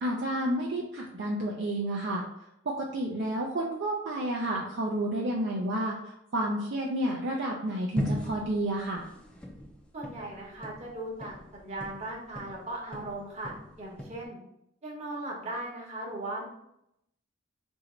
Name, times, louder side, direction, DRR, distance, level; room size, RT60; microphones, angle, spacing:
voice 1, 0.0-2.2 2.7-9.1, right 1 dB, 60° right, -1 dB, 0.5 m, -30 dB
sound 1, 8.0-12.6 12.9-14.2, equal, 5° left, 0.5 m, -38 dB
voice 2, 9.9-14.4 14.8-16.5, right 2 dB, 35° right, -2 dB, 1.0 m, -38 dB
2.9 x 2.6 x 4.3 m, 0.80 s
head